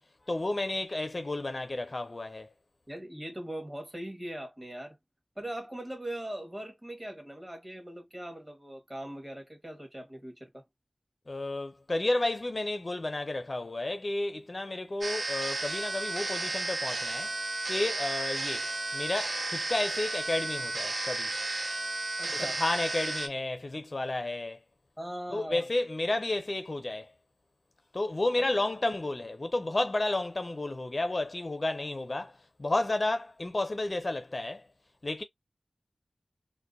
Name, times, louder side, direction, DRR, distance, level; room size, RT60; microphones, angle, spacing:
voice 1, 0.3-2.5 11.3-17.3 17.7-18.7 18.9-21.3 22.3-24.6 25.3-27.1 27.9-34.6 35.0-35.2, left 2 dB, 50° left, 0.4 m, -32 dB
voice 2, 2.9-5.0 5.3-10.6 22.2-22.6 25.0-25.7 28.4-28.5, right 1 dB, 25° right, 1.2 m, -40 dB
sound 1, 15.0-23.3, right 2 dB, 80° right, 0.5 m, -33 dB
2.6 x 2.1 x 2.4 m
wide cardioid pair, 55°, 0 cm